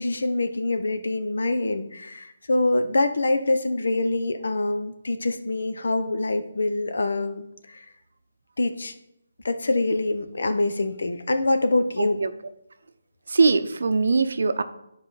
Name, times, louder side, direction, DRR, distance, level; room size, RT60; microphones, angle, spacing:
voice 1, 0.0-7.8 8.6-8.9 9.4-12.2, left 2 dB, 70° left, 8 dB, 0.9 m, -25 dB
voice 2, 12.0-12.3 13.3-14.6, right 4 dB, 65° right, 11 dB, 0.6 m, -21 dB
9.5 x 4.9 x 4.0 m, 0.81 s
hypercardioid pair, 165°, 0 cm